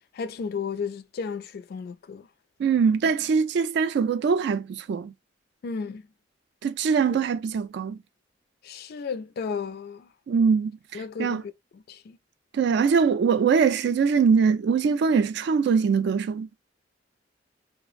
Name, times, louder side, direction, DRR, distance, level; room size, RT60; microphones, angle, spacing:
voice 1, 0.1-2.3 5.6-6.0 7.1-7.2 8.6-10.1 10.9-11.4 11.7-12.2, left 5 dB, 55° left, 0.3 m, -33 dB
voice 2, 2.6-5.1 6.6-8.0 10.3-11.4 12.5-16.6, right 5 dB, 65° right, 0.3 m, -22 dB
3.1 x 2.0 x 2.3 m
head